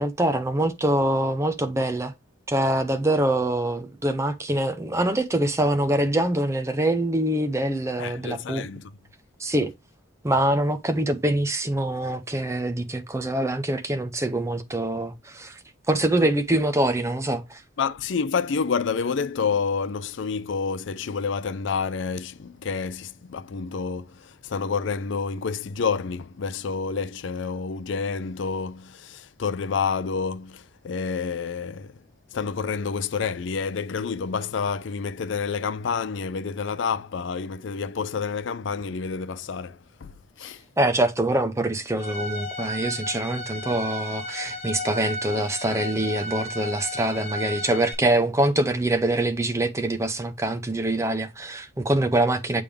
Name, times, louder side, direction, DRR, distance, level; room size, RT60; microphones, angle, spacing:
voice 1, 0.0-2.1 2.5-8.7 9.4-9.7 10.2-15.6 15.9-17.6 40.8-52.6, right 1 dB, 15° right, 0.5 m, -24 dB
voice 2, 8.0-8.9 17.8-32.0 32.3-40.6, left 5 dB, 60° left, 0.4 m, -29 dB
Bowed string instrument, 42.0-47.9, left 1 dB, 25° left, 2.3 m, -33 dB
8.7 x 3.4 x 3.5 m
head